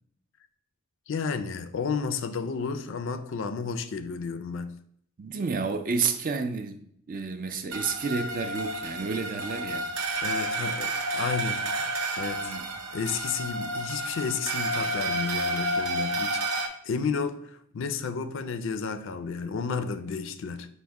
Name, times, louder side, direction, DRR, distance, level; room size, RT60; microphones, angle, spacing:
voice 1, 1.1-4.7 10.2-11.6 12.2-12.6 12.9-20.7, left 5 dB, 60° left, 0.4 m, -32 dB
voice 2, 5.2-6.8 7.1-9.9 12.4-12.7, right 4 dB, 40° right, 0.4 m, -30 dB
sound 1, 7.7-16.7, right 2 dB, 85° right, 0.6 m, -30 dB
5.2 x 2.1 x 4.6 m
head